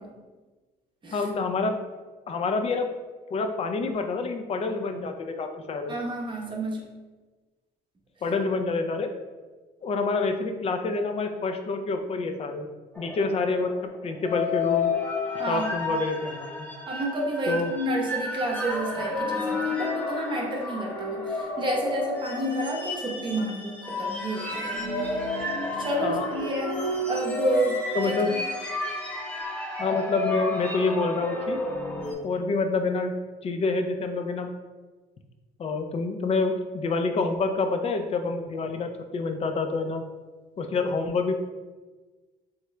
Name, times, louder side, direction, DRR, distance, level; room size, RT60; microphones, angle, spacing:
voice 1, 1.1-1.8 2.3-2.9 3.3-5.9 8.2-9.1 9.8-12.7 13.0-14.9 15.5-16.7 17.5-17.7 26.0-26.2 27.9-28.3 29.8-31.6 32.2-33.1 33.4-34.5 35.6-40.0 40.6-41.3, left 3 dB, 35° left, 6 dB, 0.4 m, -27 dB
voice 2, 5.9-6.9 15.4-15.7 16.9-24.8 25.8-28.4, right 1 dB, 30° right, -1 dB, 0.8 m, -30 dB
sound 1, 13.0-32.1, left 2 dB, 5° left, 0.8 m, -31 dB
3.5 x 3.1 x 3.2 m, 1.3 s
cardioid pair, 110°, 17 cm